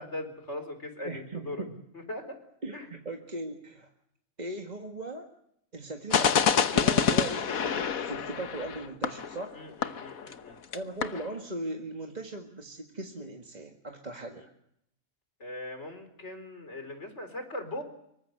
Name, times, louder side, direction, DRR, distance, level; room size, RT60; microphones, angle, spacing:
voice 1, 0.0-1.6 1.9-2.4 2.7-2.9 9.5-10.6 14.4-14.5 15.4-17.8, left 1 dB, 55° left, 8 dB, 4.4 m, -40 dB
voice 2, 1.0-1.8 2.6-3.9 4.4-5.3 5.7-9.6 10.7-14.5, right 2 dB, 30° right, 2 dB, 2.0 m, -38 dB
sound 1, 6.1-10.5 10.7-10.8 11.0-11.3, left 7 dB, 85° left, 1.6 m, -27 dB
25.5 x 23.5 x 6.7 m, 0.76 s
omnidirectional pair, 1.4 m